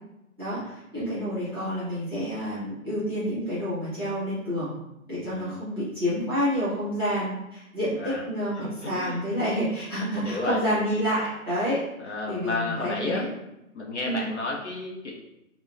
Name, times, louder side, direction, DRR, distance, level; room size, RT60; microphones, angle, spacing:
voice 1, 0.4-4.7 5.1-11.8 12.3-13.3 14.0-14.3, equal, 15° right, -12 dB, 0.7 m, -28 dB
voice 2, 5.2-5.6 8.0-8.2 8.6-9.2 10.1-10.6 12.0-13.3 13.7-15.1, left 3 dB, 55° left, -3 dB, 0.6 m, -32 dB
3.3 x 2.1 x 2.4 m, 0.90 s
hypercardioid pair, 180°, 43 cm